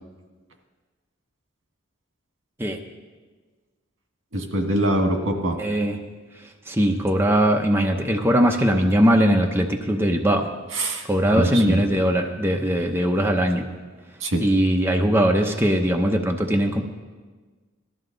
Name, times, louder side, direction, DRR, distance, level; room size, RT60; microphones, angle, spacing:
voice 1, 4.3-5.6 10.7-11.1 11.3-11.8 14.2-14.4, right 1 dB, 75° right, 3 dB, 1.8 m, -23 dB
voice 2, 5.6-6.0 6.7-10.5 11.1-13.6 14.4-16.8, equal, 10° right, 2 dB, 0.8 m, -20 dB
19.0 x 13.0 x 3.9 m, 1.4 s
head